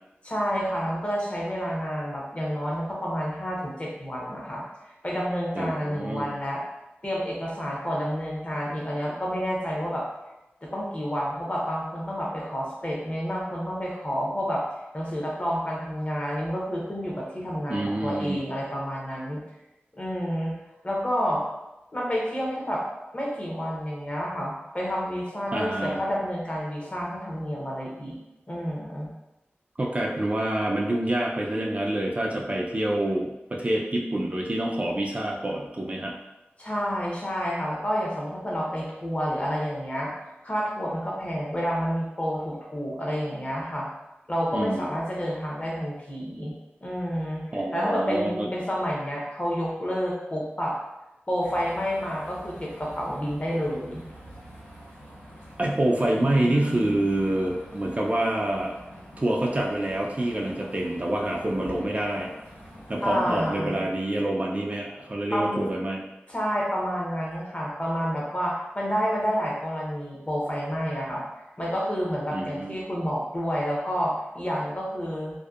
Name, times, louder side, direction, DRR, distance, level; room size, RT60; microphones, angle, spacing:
voice 1, 0.2-6.6 7.0-10.0 10.6-14.6 14.9-19.4 19.9-20.6 20.8-21.4 21.9-22.8 23.1-28.2 28.5-29.1 36.6-40.1 40.4-43.9 44.3-46.5 46.8-50.8 51.3-54.0 63.0-63.8 65.3-65.6 66.3-71.2 71.6-75.4, equal, 30° left, -3 dB, 0.7 m, -29 dB
voice 2, 5.5-6.3 17.7-18.4 25.5-26.0 29.8-36.1 44.5-44.9 47.5-48.5 55.6-58.8 59.2-62.3 62.9-66.0 72.3-72.7, right 1 dB, 35° right, -1 dB, 0.3 m, -27 dB
sound 1, 51.4-63.5, left 1 dB, 90° left, 1.4 m, -44 dB
2.6 x 2.1 x 2.3 m, 0.98 s
wide cardioid pair, 50°, 4 cm